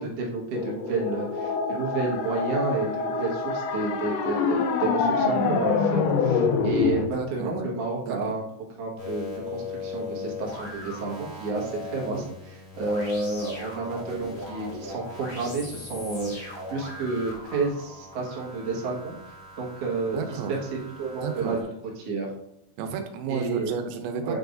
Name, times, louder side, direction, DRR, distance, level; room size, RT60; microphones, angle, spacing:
voice 1, 0.0-8.4 8.8-19.1 19.6-21.7 22.0-22.3 23.3-23.7 24.2-24.4, right 3 dB, 60° right, -3 dB, 1.7 m, -30 dB
sound 1, 0.5-7.0, left 5 dB, 80° left, 2.2 m, -25 dB
voice 2, 7.1-7.5 8.1-8.4 20.1-20.5 21.2-21.6 22.8-24.4, right 7 dB, 85° right, 6 dB, 3.0 m, -32 dB
sound 2, 9.0-21.6, left 3 dB, 50° left, 1.0 m, -39 dB
9.2 x 4.6 x 2.6 m, 0.79 s
omnidirectional pair, 5.1 m